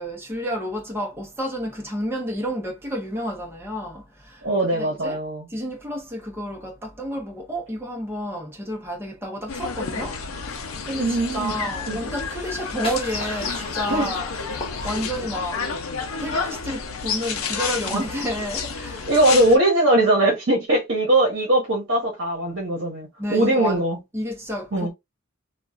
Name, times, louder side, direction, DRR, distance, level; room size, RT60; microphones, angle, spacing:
voice 1, 0.0-4.4 4.8-5.2 5.5-10.6 10.8-15.7 16.2-19.4 23.2-23.8 24.1-24.9, equal, 10° right, 1.0 m, -30 dB
voice 2, 4.4-5.5 11.0-11.6 11.9-12.0 13.9-14.1 17.9-18.0 19.1-24.0 24.7-24.9, right 1 dB, 55° right, 1.1 m, -20 dB
sound 1, 9.5-19.6, left 5 dB, 80° left, 0.6 m, -30 dB
sound 2, 12.3-15.3, left 2 dB, 25° left, 1.2 m, -37 dB
3.0 x 2.4 x 2.4 m
head